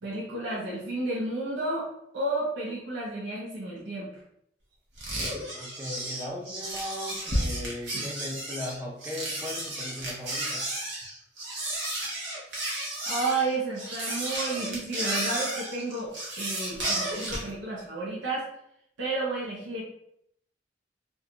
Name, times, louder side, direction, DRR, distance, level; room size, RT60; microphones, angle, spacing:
voice 1, 0.0-1.9 2.1-4.1 7.9-8.1 13.1-18.5 19.0-19.8, right 2 dB, 90° right, -5 dB, 0.6 m, -31 dB
sound 1, 5.0-17.5, right 1 dB, 65° right, 0.8 m, -32 dB
voice 2, 5.5-10.6, left 1 dB, 10° right, -3 dB, 0.5 m, -38 dB
2.5 x 2.2 x 2.8 m, 0.75 s
head